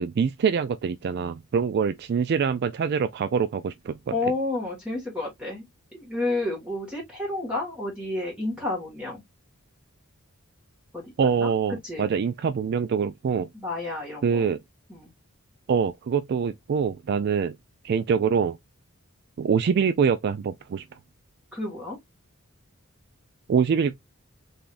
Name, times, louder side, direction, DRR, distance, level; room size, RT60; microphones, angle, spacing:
voice 1, 0.0-4.1 11.2-13.5 14.2-14.6 15.7-17.5 17.8-18.6 19.4-20.8 23.5-23.9, right 6 dB, 50° right, 0.3 m, -24 dB
voice 2, 4.1-5.7 5.9-9.2 10.9-11.5 11.8-12.1 13.5-14.5 14.9-15.1 21.5-22.0, left 2 dB, 5° right, 1.7 m, -30 dB
3.8 x 3.5 x 2.5 m
head